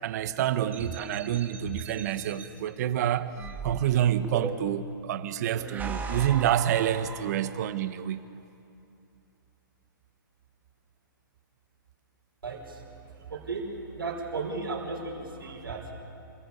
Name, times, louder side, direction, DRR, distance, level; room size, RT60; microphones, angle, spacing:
voice 1, 0.0-3.3 3.6-8.2, right 11 dB, 50° right, 12 dB, 1.2 m, -28 dB
sound 1, 0.7-2.4 3.4-4.9 5.5-7.7, right 5 dB, 15° right, 2.1 m, -38 dB
voice 2, 12.4-12.8 13.3-13.6 13.9-15.9, right 4 dB, 80° right, -2 dB, 5.2 m, -35 dB
28.0 x 16.0 x 7.0 m, 2.6 s
hypercardioid pair, 130°, 12 cm